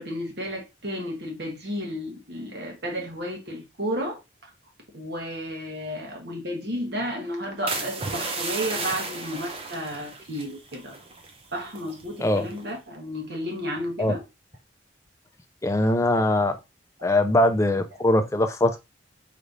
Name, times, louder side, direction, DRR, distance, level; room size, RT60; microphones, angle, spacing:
voice 1, 0.0-4.2 4.9-11.0 11.5-14.2, equal, 55° right, 1.3 m, -32 dB
sound 1, 7.7-11.4 11.7-12.0 12.5-12.8, right 3 dB, 30° right, 0.6 m, -33 dB
voice 2, 15.6-16.6 17.0-18.8, left 1 dB, 15° left, 0.4 m, -21 dB
5.0 x 3.2 x 2.6 m
head